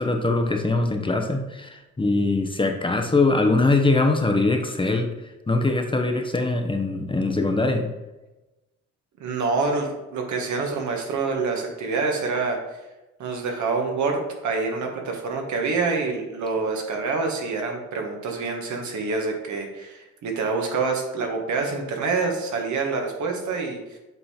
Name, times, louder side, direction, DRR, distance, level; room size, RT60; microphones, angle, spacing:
voice 1, 0.0-5.1 5.5-7.9, left 2 dB, 15° left, 4 dB, 0.8 m, -22 dB
voice 2, 9.2-12.6 13.2-24.0, right 4 dB, 70° right, 2 dB, 1.5 m, -26 dB
8.0 x 3.7 x 4.3 m, 1.0 s
cardioid pair, 90°, 30 cm